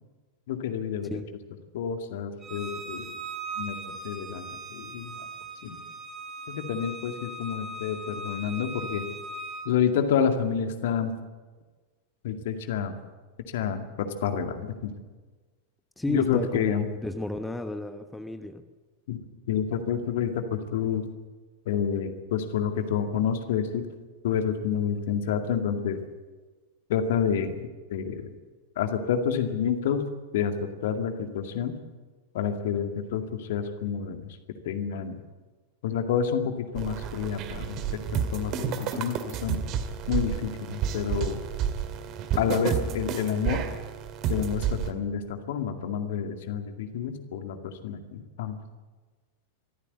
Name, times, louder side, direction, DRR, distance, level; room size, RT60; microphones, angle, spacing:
voice 1, 0.5-1.1 1.7-3.1 3.6-5.2 5.6-5.8 6.5-9.0 9.7-11.1 12.2-12.9 13.5-14.9 16.1-16.9 19.1-19.2 19.5-21.1 21.7-23.8 24.2-26.0 26.9-28.3 28.8-30.5 30.8-31.8 32.3-34.4 34.6-35.2 35.8-39.2 39.4-39.6 40.1-41.4 42.4-43.6 44.3-48.6, left 7 dB, 55° left, 6 dB, 2.1 m, -29 dB
Bowed string instrument, 2.4-9.7, right 2 dB, 20° right, 4.9 m, -39 dB
voice 2, 16.0-18.6, left 1 dB, 5° left, 8 dB, 1.1 m, -33 dB
sound 1, 36.8-44.9, right 8 dB, 35° right, 2.1 m, -30 dB
24.0 x 14.5 x 8.2 m, 1.3 s
figure-of-eight pair, 90°, 0 cm